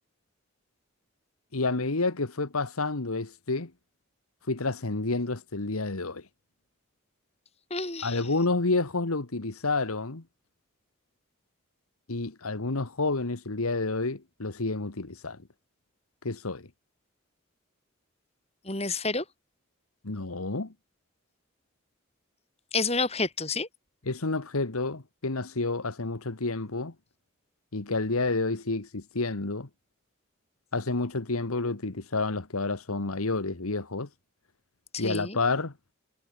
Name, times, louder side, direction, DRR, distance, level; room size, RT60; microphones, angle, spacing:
voice 1, 1.5-3.7 4.5-6.2 8.0-10.2 12.1-15.4 16.2-16.7 20.0-20.7 24.0-26.9 27.7-29.7 30.7-34.1 35.0-35.7, left 3 dB, 85° left, 1.6 m, -29 dB
voice 2, 7.7-8.2 18.6-19.2 22.7-23.7 34.9-35.4, left 3 dB, 30° left, 6.4 m, -29 dB
head